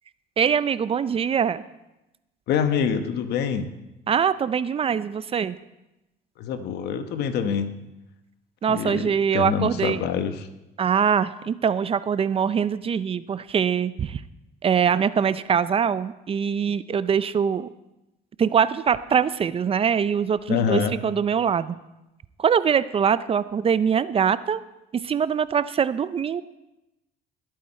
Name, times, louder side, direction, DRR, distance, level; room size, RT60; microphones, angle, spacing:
voice 1, 0.4-1.6 4.1-5.6 8.6-10.0 10.8-14.2 14.6-17.7 18.4-21.8 22.4-24.6 25.0-26.4, right 7 dB, 35° right, 15 dB, 0.5 m, -23 dB
voice 2, 2.5-3.7 6.4-7.7 8.7-10.5 20.5-21.0, left 7 dB, 75° left, 8 dB, 1.2 m, -25 dB
20.0 x 8.6 x 4.3 m, 0.95 s
cardioid pair, 110°, 17 cm